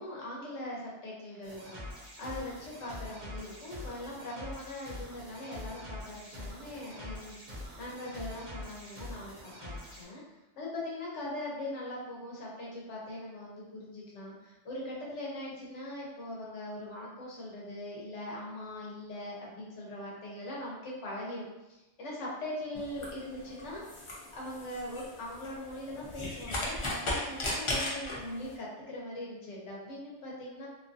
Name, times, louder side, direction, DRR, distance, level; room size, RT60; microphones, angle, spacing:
voice 1, 0.0-1.8 2.2-7.4 7.8-10.2 10.6-23.8 24.3-30.7, left 1 dB, 70° left, -4 dB, 1.2 m, -41 dB
sound 1, 1.4-10.0, left 1 dB, 35° right, 0.8 m, -44 dB
sound 2, 22.8-28.5, left 1 dB, 50° left, 0.3 m, -37 dB
2.8 x 2.4 x 2.5 m, 1.0 s
omnidirectional pair, 1.3 m